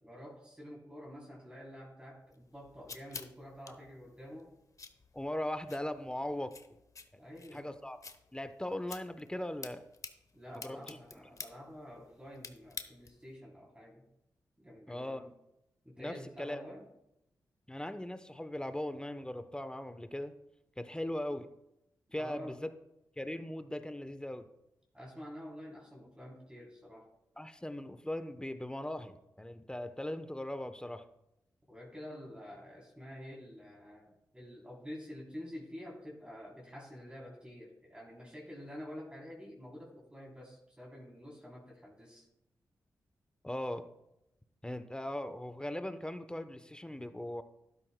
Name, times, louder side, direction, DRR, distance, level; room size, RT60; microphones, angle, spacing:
voice 1, 0.0-4.5 7.2-7.7 10.3-14.1 14.6-15.4 15.8-16.9 22.2-22.6 24.9-27.1 31.7-42.3, equal, 15° right, -2 dB, 3.4 m, -48 dB
sound 1, 2.3-13.3, left 4 dB, 50° left, 0.9 m, -51 dB
voice 2, 5.1-6.5 7.5-8.0 8.3-9.8 10.6-11.0 14.9-15.3 16.0-16.6 17.7-20.3 20.8-21.5 22.1-22.6 23.2-24.5 27.4-31.0 43.4-43.8 44.6-47.4, left 1 dB, 10° left, 10 dB, 0.9 m, -39 dB
12.5 x 11.0 x 2.2 m, 0.85 s
supercardioid pair, 45°, 7 cm